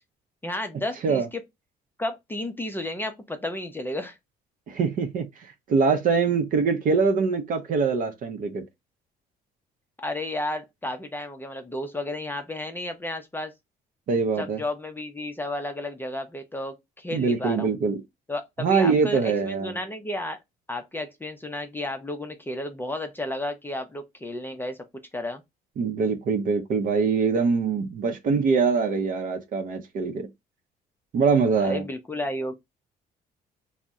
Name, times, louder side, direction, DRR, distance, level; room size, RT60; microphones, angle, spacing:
voice 1, 0.4-1.4 2.0-4.2 10.0-13.5 14.4-17.7 18.3-20.4 20.7-24.8 25.1-25.4 31.6-32.5, left 1 dB, 10° left, 0.5 m, -32 dB
voice 2, 4.7-8.6 14.1-14.6 17.1-18.0 18.6-19.8 25.8-30.3 31.1-31.8, right 5 dB, 55° right, 0.6 m, -23 dB
2.6 x 2.0 x 3.4 m
cardioid pair, 110°, 17 cm